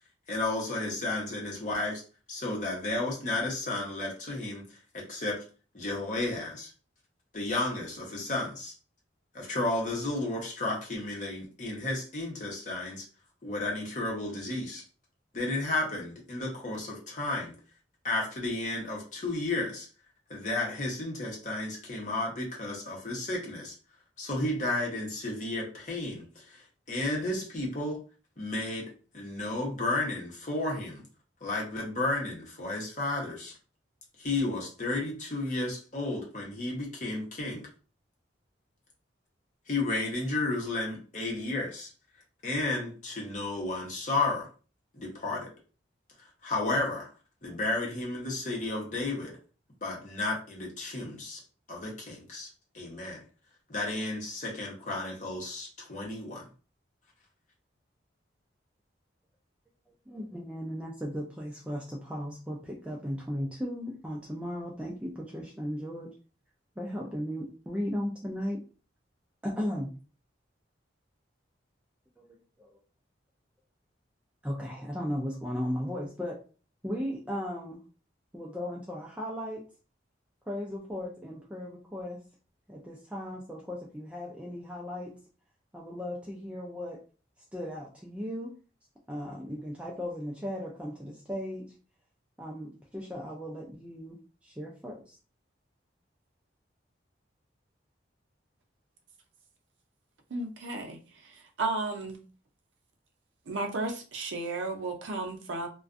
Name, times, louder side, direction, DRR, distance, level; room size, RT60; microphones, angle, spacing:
voice 1, 0.3-2.0 2.3-4.6 4.9-5.4 5.7-6.7 7.3-8.7 9.3-13.1 13.4-14.8 15.3-17.5 18.0-19.9 20.3-23.7 24.2-28.0 28.4-31.0 31.4-33.5 34.2-37.6 39.7-41.9 42.4-44.5 44.9-45.5 46.4-47.1 47.4-49.3 49.8-51.4 51.7-52.5 52.7-53.2 53.7-56.5, left 2 dB, 40° left, -2 dB, 0.8 m, -32 dB
voice 2, 59.9-66.1 66.8-68.6 69.4-69.9 72.2-72.8 74.4-76.4 76.8-77.8 78.3-79.6 80.5-82.2 82.7-85.1 85.7-87.0 87.5-88.5 89.1-91.7 92.4-94.2 94.4-95.2, equal, 5° right, -2 dB, 0.3 m, -36 dB
voice 3, 100.3-101.0 101.2-102.2 103.5-105.7, right 2 dB, 85° right, 4 dB, 0.5 m, -33 dB
2.4 x 2.2 x 2.5 m, 0.36 s
head